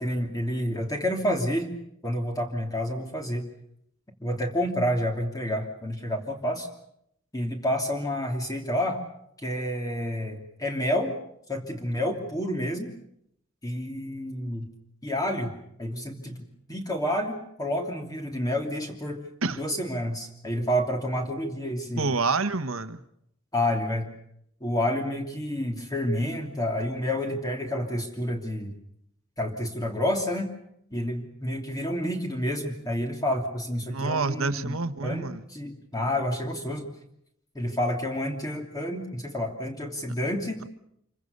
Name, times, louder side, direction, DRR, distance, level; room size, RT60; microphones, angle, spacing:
voice 1, 0.0-1.7 2.0-3.5 4.2-6.7 7.3-9.0 9.4-11.1 11.5-12.9 13.6-14.7 15.0-15.5 15.8-16.4 16.7-19.2 19.5-22.1 23.5-24.1 24.6-28.7 29.4-30.5 30.9-34.8 35.0-36.9 37.5-40.6, equal, 20° left, 2 dB, 3.0 m, -29 dB
voice 2, 22.0-23.0 33.8-35.4, right 3 dB, 90° right, 11 dB, 1.5 m, -28 dB
27.5 x 24.0 x 6.8 m, 0.75 s
head